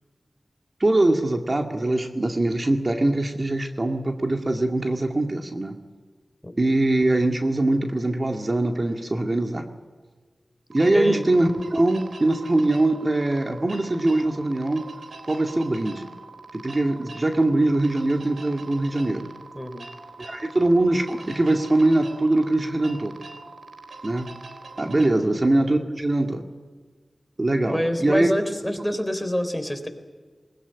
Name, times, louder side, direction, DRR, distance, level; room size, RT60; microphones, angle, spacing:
voice 1, 0.8-5.7 6.6-9.6 10.7-14.8 15.2-16.1 16.5-19.3 20.2-23.1 24.0-24.3 24.8-26.4 27.4-28.3, right 2 dB, 40° right, 4 dB, 2.2 m, -22 dB
sound 1, 10.7-25.1, right 3 dB, 90° right, 3.7 m, -43 dB
voice 2, 10.9-11.3 19.5-19.9 25.1-25.3 27.7-29.9, equal, 10° left, 7 dB, 3.7 m, -27 dB
20.5 x 20.5 x 9.7 m, 1.5 s
cardioid pair, 40°, 0 cm